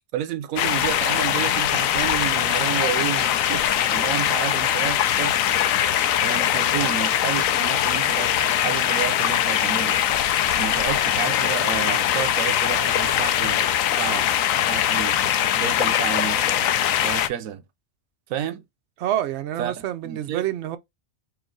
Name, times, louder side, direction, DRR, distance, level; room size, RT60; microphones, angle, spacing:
voice 1, 0.1-5.5 6.2-10.0 10.5-13.7 13.9-14.3 14.7-15.2 15.6-16.6 17.0-17.6 18.3-18.6 19.6-20.5, right 10 dB, 90° right, 1.0 m, -31 dB
sound 1, 0.6-17.3, left 10 dB, 85° left, 1.0 m, -22 dB
voice 2, 19.0-20.8, right 12 dB, 65° right, 0.9 m, -27 dB
4.6 x 2.3 x 3.7 m
omnidirectional pair, 1.4 m